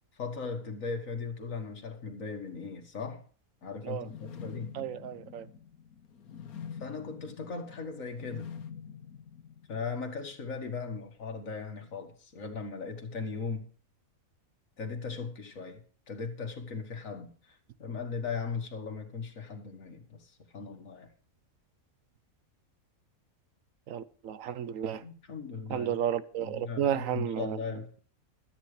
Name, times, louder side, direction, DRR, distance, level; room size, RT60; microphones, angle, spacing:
voice 1, 0.1-3.2 3.6-4.8 6.8-8.5 9.7-13.7 14.8-21.1 25.0-26.0 26.4-27.9, left 4 dB, 65° left, 2.1 m, -38 dB
sound 1, 3.9-10.0, left 8 dB, 90° left, 1.5 m, -46 dB
voice 2, 4.7-5.5 23.9-25.0 25.7-27.6, right 9 dB, 65° right, 1.2 m, -32 dB
13.0 x 9.0 x 4.8 m
omnidirectional pair, 1.5 m